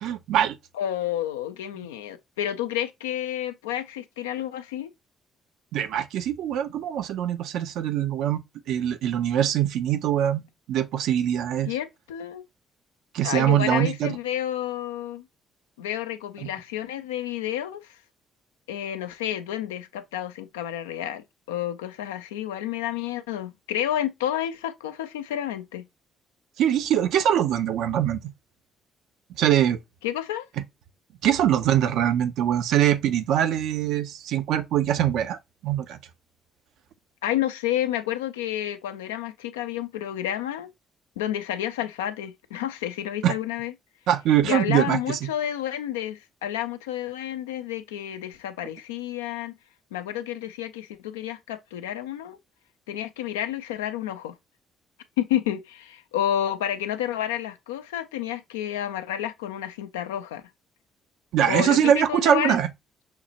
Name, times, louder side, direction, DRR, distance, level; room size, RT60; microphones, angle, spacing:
voice 1, 0.0-0.6 5.7-11.7 13.1-14.2 26.6-28.2 29.4-29.8 31.2-36.0 43.2-43.3 44.1-45.3 61.3-62.7, right 10 dB, 70° right, 0.4 m, -23 dB
voice 2, 0.7-4.9 11.7-12.4 13.2-15.3 15.8-17.9 18.7-25.9 30.0-30.5 37.2-40.7 41.2-43.7 44.4-49.5 49.9-52.4 52.9-54.4 55.2-60.4 61.5-62.6, left 11 dB, 85° left, 0.3 m, -30 dB
5.7 x 2.1 x 2.6 m
hypercardioid pair, 45°, 0 cm